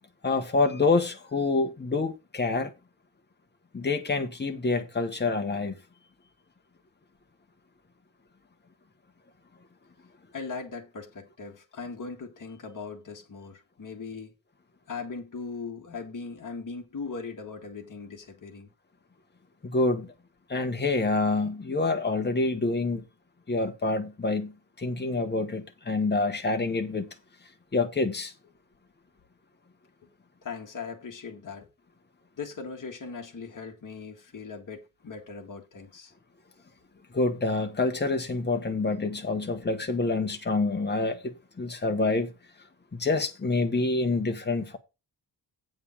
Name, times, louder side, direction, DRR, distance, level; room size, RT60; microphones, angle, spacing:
voice 1, 0.2-2.7 3.7-5.7 19.6-20.1 20.5-23.0 23.5-27.1 27.7-28.3 37.1-42.3 42.9-44.8, left 3 dB, 25° left, 1.2 m, -27 dB
voice 2, 10.3-14.4 14.9-18.7 30.4-31.7 32.4-36.1, left 4 dB, 45° left, 1.8 m, -39 dB
8.7 x 5.4 x 5.2 m
wide cardioid pair, 165°, 44 cm